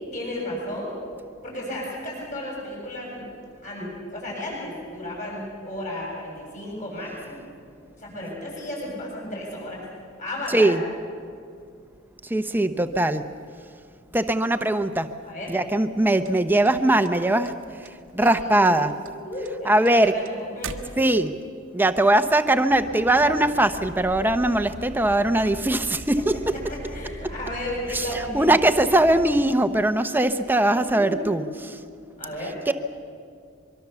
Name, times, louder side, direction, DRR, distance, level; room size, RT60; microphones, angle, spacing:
voice 1, 0.1-0.9 1.4-3.2 3.6-7.4 8.0-9.8 10.2-10.7 15.2-15.6 18.2-18.8 19.2-20.8 26.7-28.5 30.7-31.3 32.2-32.6, left 1 dB, 40° left, -2 dB, 7.7 m, -33 dB
voice 2, 10.5-10.8 12.3-13.2 14.1-15.1 15.5-17.5 18.1-18.9 19.6-20.1 21.0-21.3 21.7-26.3 27.9-28.0 28.3-31.4 32.7-32.8, right 1 dB, 10° right, 9 dB, 0.8 m, -20 dB
sound 1, 16.2-17.5 17.8-18.4 18.6-21.5, right 5 dB, 85° right, 1.2 m, -39 dB
Bus, 22.7-29.4, right 1 dB, 55° right, 1.2 m, -40 dB
23.5 x 23.0 x 7.0 m, 2.3 s
head